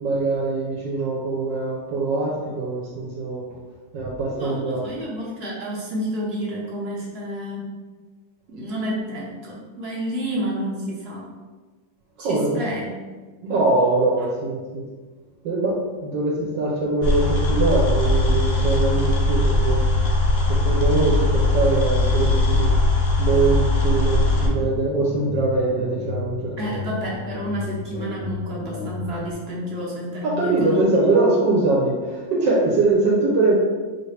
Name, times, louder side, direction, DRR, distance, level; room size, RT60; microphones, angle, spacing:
voice 1, 0.0-3.4 3.9-4.9 12.2-12.6 13.4-14.9 15.4-19.9 20.5-22.8 23.2-26.9 30.2-33.6, right 3 dB, 75° right, -3 dB, 1.3 m, -22 dB
voice 2, 4.3-7.7 8.5-11.3 12.2-12.9 26.6-30.9, equal, 50° right, -4 dB, 0.8 m, -30 dB
sound 1, 17.0-24.5, left 2 dB, 75° left, 0.5 m, -20 dB
sound 2, 24.3-29.3, left 5 dB, 90° left, 1.5 m, -33 dB
4.7 x 2.8 x 3.2 m, 1.3 s
omnidirectional pair, 2.1 m